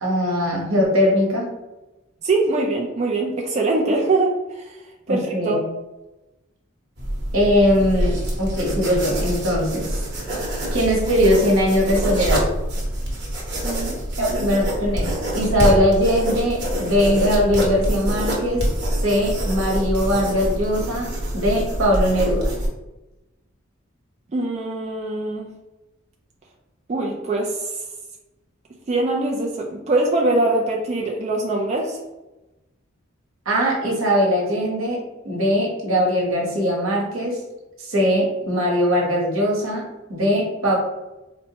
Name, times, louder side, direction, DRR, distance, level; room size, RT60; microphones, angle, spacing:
voice 1, 0.0-1.5 5.1-5.6 7.3-10.1 10.7-12.5 14.2-18.7 19.0-22.5 33.4-37.4 37.8-40.8, equal, 80° right, -2 dB, 1.0 m, -21 dB
voice 2, 2.2-4.8 5.1-5.6 13.6-14.5 24.3-25.5 26.9-27.7 28.9-32.0, right 2 dB, 30° right, -1 dB, 0.3 m, -23 dB
sound 1, 7.0-22.7, equal, 55° right, 1.0 m, -25 dB
4.2 x 2.1 x 2.8 m, 1.0 s
head